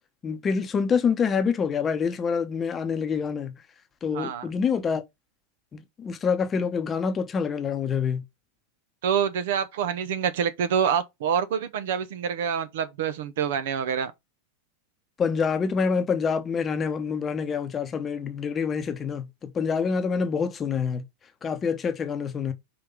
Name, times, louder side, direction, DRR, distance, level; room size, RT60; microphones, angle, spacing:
voice 1, 0.2-3.5 4.0-5.0 5.7-8.2 15.2-21.0 21.4-22.5, left 6 dB, 20° left, 1.0 m, -26 dB
voice 2, 4.1-4.5 9.0-14.1, right 8 dB, 55° right, 0.9 m, -26 dB
5.5 x 3.5 x 5.3 m
figure-of-eight pair, 90°, 0 cm